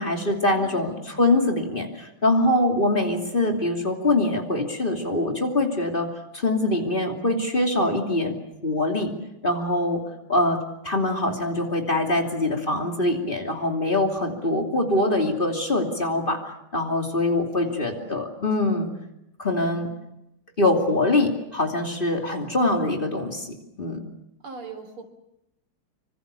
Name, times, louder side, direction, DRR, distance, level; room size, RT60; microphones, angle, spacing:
voice 1, 0.0-8.3 8.6-9.1 9.4-10.0 10.3-10.6 10.8-16.4 16.7-18.9 19.4-19.9 20.6-24.0, left 2 dB, 25° left, 2 dB, 2.9 m, -23 dB
voice 2, 0.5-1.2 17.6-18.4 18.7-18.8 24.4-25.0, right 2 dB, 90° right, 6 dB, 4.4 m, -42 dB
26.5 x 25.5 x 6.9 m, 0.87 s
omnidirectional pair, 2.3 m